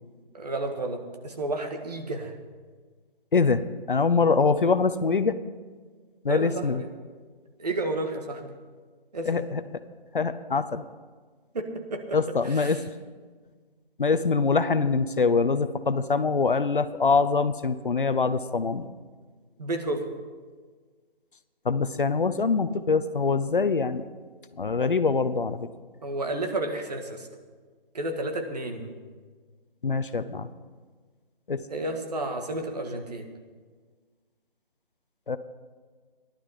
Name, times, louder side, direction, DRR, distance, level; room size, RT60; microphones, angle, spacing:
voice 1, 0.3-2.3 6.3-6.9 7.6-8.6 9.1-9.5 11.5-12.8 19.6-20.1 26.0-27.3 27.9-28.9 31.7-33.3, right 2 dB, 45° right, 4 dB, 1.7 m, -32 dB
voice 2, 3.3-3.6 3.9-5.4 6.2-6.8 9.3-9.6 10.1-10.8 12.1-12.8 14.0-18.9 21.6-24.0 24.6-25.7 29.8-30.5 31.5-31.6 35.3-35.4, left 4 dB, 60° left, 12 dB, 0.8 m, -24 dB
15.5 x 12.0 x 5.5 m, 1.5 s
figure-of-eight pair, 155°, 29 cm